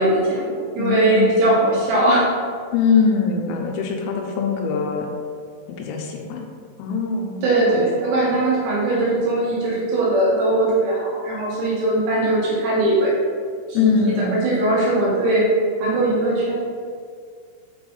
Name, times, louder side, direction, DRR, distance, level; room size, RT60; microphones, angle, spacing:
voice 1, 0.0-2.4 7.4-13.1 13.7-15.5 15.8-16.5, right 1 dB, 75° right, -5 dB, 2.9 m, -20 dB
voice 2, 0.8-1.3 2.7-5.1 5.7-6.5 6.8-7.9 13.7-14.3, left 6 dB, 90° left, 2 dB, 3.5 m, -22 dB
7.7 x 3.5 x 3.8 m, 2.1 s
omnidirectional pair, 5.9 m